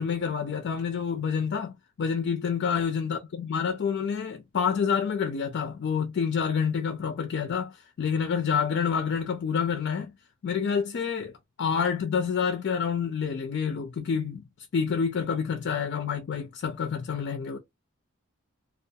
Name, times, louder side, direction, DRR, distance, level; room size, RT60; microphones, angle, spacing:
voice 1, 0.0-10.1 10.4-11.3 11.6-14.4 14.7-17.6, left 6 dB, 55° left, 0.4 m, -28 dB
2.3 x 2.2 x 2.6 m
head